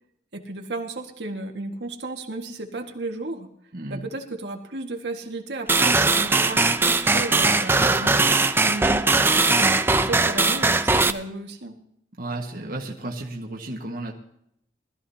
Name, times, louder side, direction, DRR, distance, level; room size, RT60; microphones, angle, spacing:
voice 1, 0.3-3.5 3.9-8.3 8.7-11.8, right 2 dB, 75° right, 2 dB, 1.8 m, -33 dB
voice 2, 3.7-4.1 7.8-8.3 12.2-14.1, right 2 dB, 55° right, -1 dB, 1.6 m, -33 dB
sound 1, 5.7-11.1, right 3 dB, 15° right, 0.5 m, -20 dB
20.0 x 13.5 x 2.8 m, 0.74 s
head